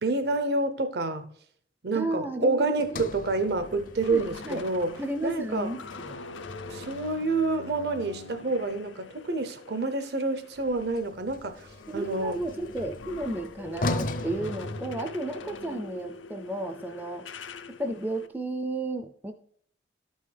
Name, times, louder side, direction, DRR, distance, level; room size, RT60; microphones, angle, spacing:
voice 1, 0.0-1.2 1.8-5.0 5.2-5.7 6.7-11.7 11.9-12.4, right 3 dB, 60° right, 0.6 m, -28 dB
voice 2, 1.9-2.6 2.9-3.1 4.1-4.6 5.0-6.2 11.9-17.2 17.8-19.3, right 2 dB, 10° right, 0.4 m, -33 dB
sound 1, 2.7-11.1 11.4-18.3, left 3 dB, 85° left, 0.6 m, -44 dB
Sliding door, 2.8-7.1 10.5-15.5, left 2 dB, 45° left, 0.5 m, -38 dB
12.5 x 5.5 x 3.3 m
head